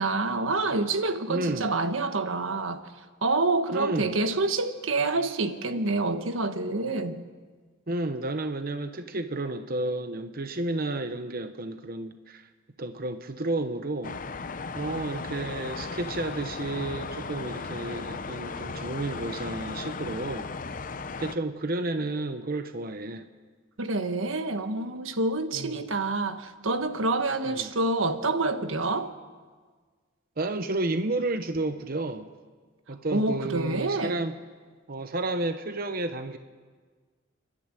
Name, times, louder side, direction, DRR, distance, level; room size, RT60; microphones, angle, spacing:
voice 1, 0.0-2.8 3.2-7.2 23.8-29.1 33.1-34.2, right 3 dB, 90° right, 9 dB, 1.4 m, -27 dB
voice 2, 1.3-1.7 3.7-4.2 7.9-12.5 12.8-14.1 14.7-20.5 21.2-23.3 25.5-25.8 27.5-27.7 30.4-32.3 32.9-34.3 34.9-36.4, right 2 dB, 45° right, 9 dB, 0.9 m, -31 dB
sound 1, 14.0-21.4, left 4 dB, 40° left, 0.7 m, -36 dB
30.0 x 12.0 x 9.1 m, 1.5 s
head